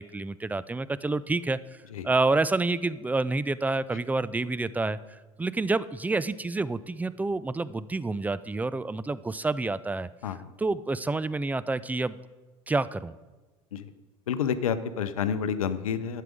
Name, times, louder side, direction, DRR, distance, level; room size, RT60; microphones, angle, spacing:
voice 1, 0.0-10.1 10.6-12.2 12.7-13.1, right 3 dB, 10° right, 17 dB, 0.4 m, -28 dB
voice 2, 14.3-16.2, left 7 dB, 85° left, 13 dB, 0.6 m, -29 dB
11.0 x 7.5 x 5.0 m, 1.2 s
hypercardioid pair, 70°, 18 cm